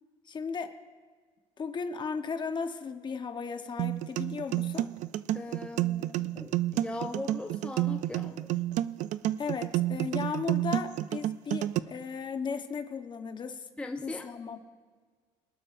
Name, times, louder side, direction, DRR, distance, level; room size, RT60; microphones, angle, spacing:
voice 1, 0.3-0.7 1.6-4.9 9.4-13.6 14.0-14.6, left 5 dB, 35° left, 7 dB, 1.0 m, -36 dB
sound 1, 3.8-11.8, right 14 dB, 65° right, 0.4 m, -30 dB
voice 2, 5.3-8.5 13.8-14.3, left 2 dB, 10° left, 3 dB, 0.7 m, -39 dB
23.5 x 12.5 x 2.6 m, 1.5 s
cardioid pair, 105°, 14 cm